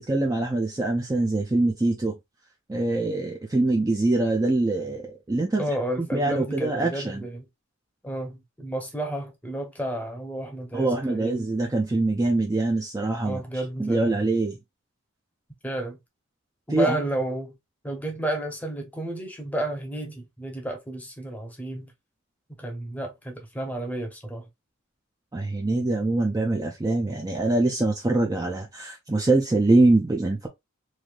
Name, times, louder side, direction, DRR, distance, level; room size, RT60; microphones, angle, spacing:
voice 1, 0.0-2.2 2.7-5.6 6.0-7.2 10.7-13.4 13.8-14.6 16.7-17.0 25.3-30.5, right 2 dB, 15° right, 0.4 m, -24 dB
voice 2, 5.6-7.5 8.0-11.4 13.2-14.2 15.6-16.0 16.7-17.5 17.8-21.9 22.6-24.4, right 1 dB, 10° left, 0.8 m, -31 dB
3.2 x 2.6 x 2.4 m
head